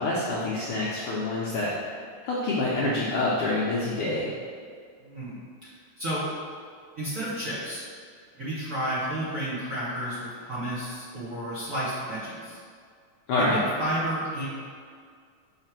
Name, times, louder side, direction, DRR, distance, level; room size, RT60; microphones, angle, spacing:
voice 1, 0.0-1.7 2.2-4.3 13.3-13.6, left 2 dB, 75° left, -7 dB, 1.3 m, -26 dB
voice 2, 5.0-5.4 6.0-6.3 7.0-7.9 8.3-12.6 13.4-14.4, right 1 dB, 55° right, -10 dB, 0.9 m, -31 dB
6.3 x 3.3 x 5.9 m, 2.1 s
omnidirectional pair, 3.5 m